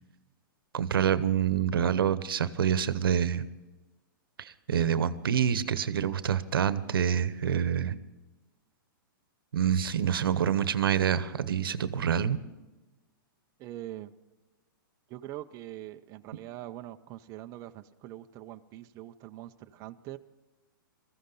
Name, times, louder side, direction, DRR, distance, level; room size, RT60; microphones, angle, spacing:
voice 1, 0.7-3.5 4.4-8.0 9.5-12.4, right 8 dB, 90° right, 14 dB, 0.9 m, -27 dB
voice 2, 13.6-14.1 15.1-20.2, right 14 dB, 30° right, 7 dB, 0.5 m, -43 dB
20.0 x 14.5 x 3.9 m, 1.1 s
hypercardioid pair, 145°, 12 cm